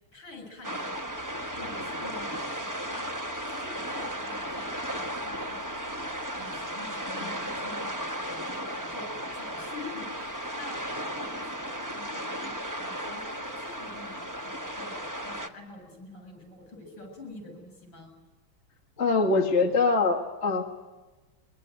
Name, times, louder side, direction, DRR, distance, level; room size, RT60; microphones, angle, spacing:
voice 1, 0.1-1.2 1.6-3.1 3.5-9.1 9.3-18.1, left 2 dB, 60° left, 4 dB, 8.5 m, -47 dB
sound 1, 0.6-15.5, equal, 15° right, 0.6 m, -35 dB
voice 2, 19.0-20.6, left 3 dB, 35° left, 1 dB, 1.7 m, -24 dB
23.5 x 23.5 x 9.4 m, 1.2 s
omnidirectional pair, 2.3 m